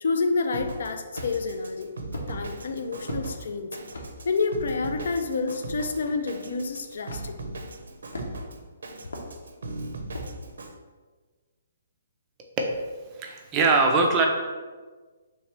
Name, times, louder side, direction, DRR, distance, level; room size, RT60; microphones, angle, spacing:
voice 1, 0.0-1.9 2.3-3.8 4.3-7.6, left 4 dB, 55° left, 7 dB, 0.4 m, -28 dB
Drum kit, 0.5-10.7, right 2 dB, 80° right, 0.6 m, -39 dB
sound 1, 1.1-1.5 2.1-2.3 3.1-3.3 3.9-4.1 5.0-5.1 6.0-6.1 7.1-7.3 8.1-8.5 9.1-9.3 10.1-10.3, left 1 dB, 75° left, 0.9 m, -36 dB
voice 2, 13.2-14.3, right 3 dB, 15° right, 1 dB, 0.4 m, -21 dB
3.3 x 3.0 x 4.5 m, 1.4 s
hypercardioid pair, 175°, 0 cm